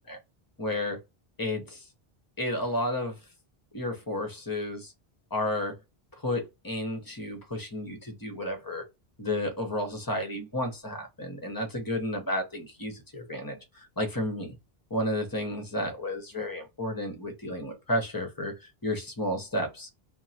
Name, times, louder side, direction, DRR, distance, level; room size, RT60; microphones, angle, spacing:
voice 1, 0.6-1.0 1.4-1.9 2.4-3.2 3.7-4.9 5.3-5.7 6.2-8.8 9.2-14.5 14.9-19.9, left 1 dB, 25° left, 0.6 m, -32 dB
2.9 x 2.1 x 2.6 m
omnidirectional pair, 1.0 m